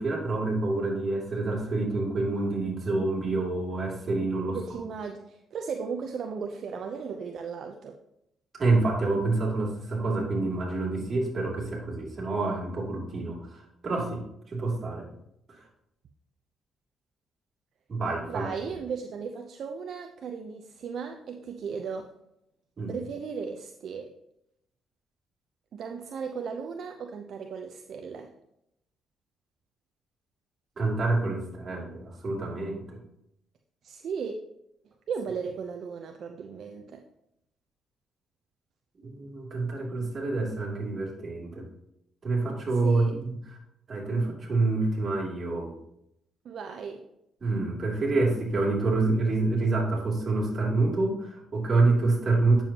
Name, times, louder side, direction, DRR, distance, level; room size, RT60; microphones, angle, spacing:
voice 1, 0.0-4.6 8.6-14.2 14.5-15.1 17.9-18.5 22.8-22.9 30.8-33.0 39.0-41.7 42.2-43.3 43.9-45.7 47.4-52.6, right 3 dB, 40° right, -3 dB, 3.0 m, -27 dB
voice 2, 4.5-8.0 18.3-22.1 22.9-24.1 25.7-28.3 33.8-34.4 35.1-37.0 42.8-43.2 46.4-47.1, right 6 dB, 65° right, 4 dB, 0.6 m, -36 dB
8.9 x 7.0 x 2.9 m, 0.79 s
cardioid pair, 90°, 0 cm